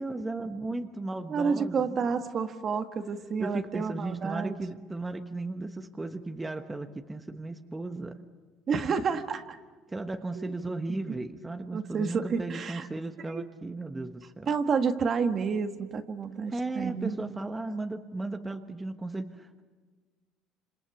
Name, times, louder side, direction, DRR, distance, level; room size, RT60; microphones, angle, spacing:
voice 1, 0.0-2.1 3.4-8.2 9.9-14.5 16.5-19.6, right 2 dB, 15° right, 6 dB, 1.3 m, -35 dB
voice 2, 1.3-4.6 8.7-9.6 10.3-10.4 10.9-11.0 11.7-12.9 13.3-13.5 14.5-17.4, right 5 dB, 40° right, 7 dB, 1.7 m, -30 dB
27.0 x 26.5 x 7.3 m, 1.4 s
cardioid pair, 105°, 0 cm